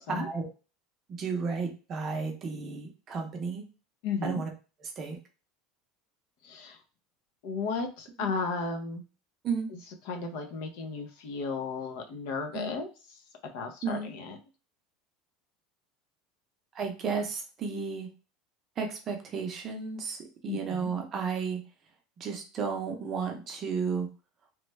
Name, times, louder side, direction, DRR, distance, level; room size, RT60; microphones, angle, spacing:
voice 1, 0.1-0.5 1.1-3.6 4.2-4.5 5.0-5.2 9.4-9.7 12.5-12.7 13.8-14.1 16.8-18.1 18.8-20.2 20.4-21.6 22.2-24.1, right 5 dB, 25° right, 2 dB, 0.6 m, -33 dB
voice 2, 4.0-4.4 6.4-6.8 7.4-9.0 9.7-9.8 10.0-12.9 13.4-14.4 20.5-20.9, left 4 dB, 60° left, 4 dB, 0.6 m, -34 dB
3.1 x 2.2 x 3.2 m, 0.34 s
cardioid pair, 175°, 0 cm